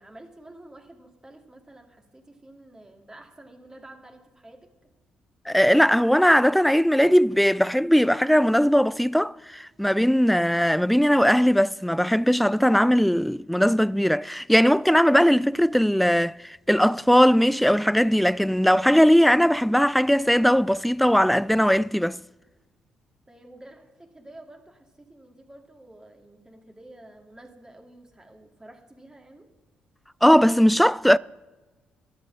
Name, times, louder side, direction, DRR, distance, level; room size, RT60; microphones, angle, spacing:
voice 1, 0.0-4.7 23.3-29.5, right 1 dB, 15° right, 2.4 m, -49 dB
voice 2, 5.5-22.2 30.2-31.2, equal, ahead, 0.3 m, -19 dB
13.0 x 8.1 x 6.3 m
hypercardioid pair, 50°, 4 cm